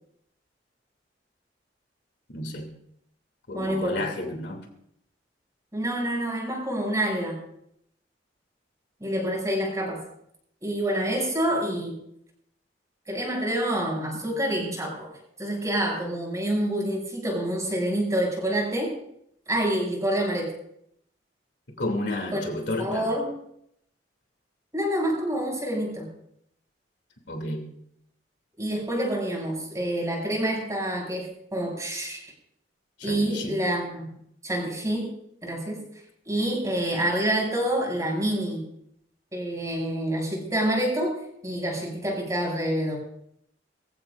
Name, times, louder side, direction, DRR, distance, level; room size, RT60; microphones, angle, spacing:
voice 1, 2.3-2.7 3.5-4.6 21.8-23.1 27.3-27.6 33.0-33.6, left 2 dB, 70° left, 3 dB, 3.0 m, -31 dB
voice 2, 3.5-4.1 5.7-7.4 9.0-10.0 10.6-12.0 13.1-19.0 19.5-20.5 22.3-22.4 22.8-23.4 24.7-26.1 28.6-32.3 33.0-34.1 34.4-35.1 35.4-35.9 36.3-38.7 39.3-43.0, right 1 dB, 20° right, -1 dB, 7.0 m, -27 dB
24.0 x 15.5 x 2.6 m, 0.73 s
head